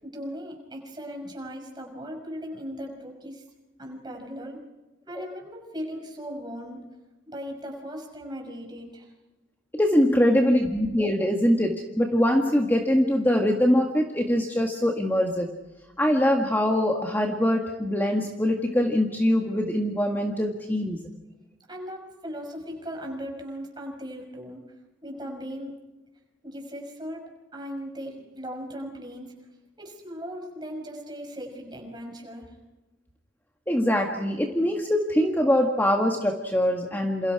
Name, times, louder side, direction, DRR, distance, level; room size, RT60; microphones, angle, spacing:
voice 1, 0.0-3.4 3.8-4.6 5.1-6.9 7.3-9.1 21.7-24.7 25.0-25.7 26.4-29.4 29.8-32.6, equal, 20° right, 1 dB, 5.9 m, -38 dB
voice 2, 9.7-15.5 16.0-21.0 33.7-37.3, left 1 dB, 10° left, 1 dB, 1.9 m, -23 dB
28.5 x 28.5 x 4.9 m, 1.1 s
head